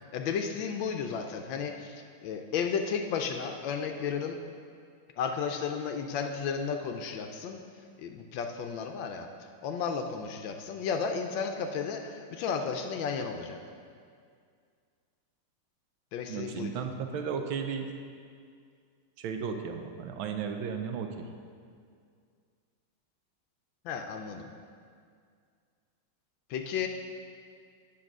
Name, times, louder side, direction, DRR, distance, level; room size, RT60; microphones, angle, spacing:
voice 1, 0.1-4.4 5.2-7.6 8.0-9.3 9.6-13.6 16.1-16.7 23.8-24.5 26.5-26.9, left 6 dB, 75° left, 5 dB, 1.2 m, -33 dB
voice 2, 16.3-17.9 19.2-21.3, right 6 dB, 75° right, 5 dB, 1.4 m, -34 dB
8.5 x 5.2 x 6.1 m, 2.2 s
omnidirectional pair, 2.3 m